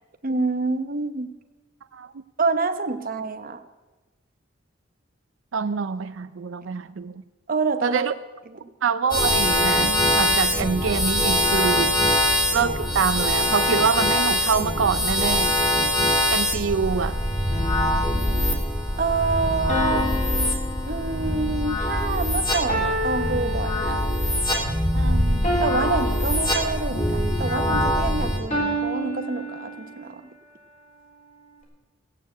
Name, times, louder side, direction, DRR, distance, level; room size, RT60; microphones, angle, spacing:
voice 1, 0.2-1.3 2.4-3.6 7.5-8.1 8.5-8.7 19.0-20.2 20.9-24.0 25.6-30.3, right 3 dB, 45° right, 8 dB, 1.0 m, -27 dB
voice 2, 5.5-7.1 7.8-8.1 8.8-11.9 12.5-15.5 16.3-17.2 24.9-25.4, right 6 dB, 85° right, 11 dB, 0.5 m, -25 dB
sound 1, 9.1-28.4, left 1 dB, 25° left, 3.2 m, -23 dB
sound 2, 17.5-18.3 19.7-21.5 22.7-24.3 25.4-27.1 28.5-30.1, equal, 40° left, 4.0 m, -30 dB
16.0 x 8.3 x 8.0 m, 1.2 s
head